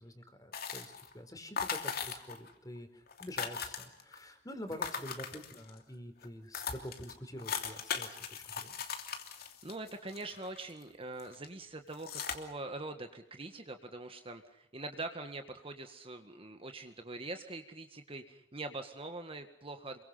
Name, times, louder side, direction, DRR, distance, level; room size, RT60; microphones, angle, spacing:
voice 1, 0.0-8.7, equal, 20° left, 8 dB, 4.4 m, -47 dB
sound 1, 0.5-1.1 1.6-2.5 2.8-2.9 3.1-4.2 4.7-5.8 6.2-6.3 6.5-10.8 11.2-11.5 11.9-12.3, left 6 dB, 55° left, 3.0 m, -39 dB
voice 2, 9.3-20.0, right 2 dB, 30° right, 6 dB, 1.8 m, -43 dB
28.5 x 23.5 x 5.7 m, 0.79 s
head